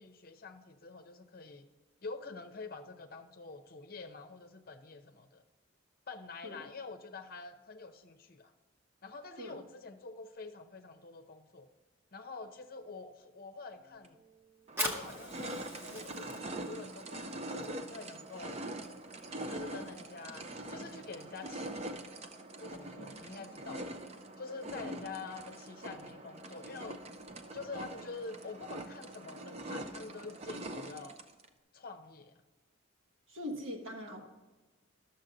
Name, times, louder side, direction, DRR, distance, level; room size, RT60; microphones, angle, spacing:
voice 1, 0.0-1.7 2.0-5.4 6.1-8.5 9.0-11.7 12.1-14.2 14.8-18.6 19.5-21.9 22.6-24.0 24.4-27.0 27.5-31.2 31.7-32.3, left 3 dB, 45° left, 7 dB, 0.7 m, -46 dB
sound 1, 14.0-14.1 14.7-31.5, right 1 dB, 30° right, 0.5 m, -44 dB
Fire, 14.6-21.8, equal, 10° right, 0.9 m, -44 dB
voice 2, 33.3-34.2, left 1 dB, 80° right, 0 dB, 1.5 m, -42 dB
11.5 x 7.0 x 3.9 m, 1.2 s
head